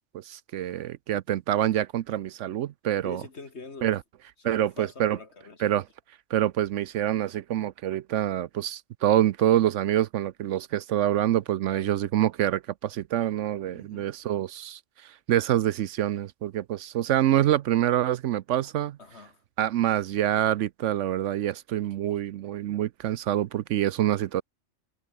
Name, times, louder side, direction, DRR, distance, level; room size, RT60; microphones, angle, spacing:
voice 1, 0.1-3.2 3.8-4.0 4.4-5.2 5.6-5.8 6.3-19.0 19.6-24.4, right 12 dB, 70° right, 0.9 m, -26 dB
voice 2, 3.0-4.0 4.4-5.6 11.7-11.9 13.7-14.1 19.0-19.4, left 4 dB, 55° left, 2.6 m, -44 dB
omnidirectional pair, 1.3 m